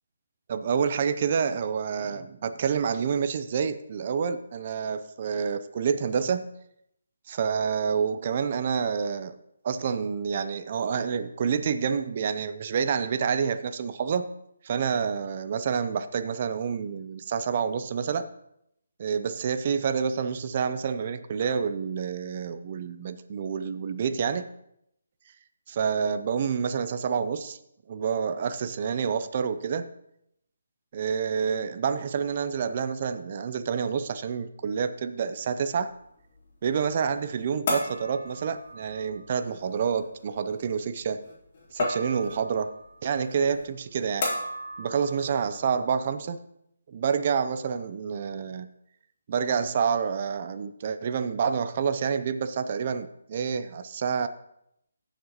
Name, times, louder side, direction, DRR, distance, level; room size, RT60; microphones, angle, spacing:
voice 1, 0.5-6.6 7.3-9.4 9.6-14.3 14.6-18.3 19.0-24.5 25.7-27.6 27.9-29.9 30.9-35.9 36.6-41.2 41.7-42.7 43.0-44.3 44.8-46.4 46.9-48.7 49.3-54.3, right 6 dB, 40° right, 11 dB, 0.6 m, -28 dB
sound 1, 35.3-46.2, left 2 dB, 40° left, 3.5 m, -37 dB
16.0 x 6.6 x 3.0 m, 0.77 s
hypercardioid pair, 160°, 0 cm